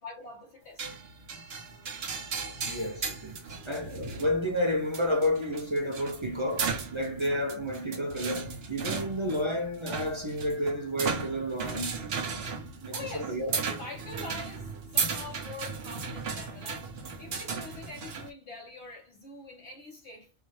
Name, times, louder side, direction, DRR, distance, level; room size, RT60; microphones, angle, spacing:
voice 1, 0.0-1.4 1.7-2.1 3.4-3.5 12.9-13.4 13.7-20.3, left 3 dB, 80° left, 1.7 m, -45 dB
sound 1, 0.8-18.3, right 5 dB, 65° right, 1.1 m, -36 dB
voice 2, 2.6-12.0 12.3-12.4 12.8-13.6, equal, 30° right, 0.7 m, -31 dB
4.5 x 2.6 x 3.2 m
omnidirectional pair, 1.1 m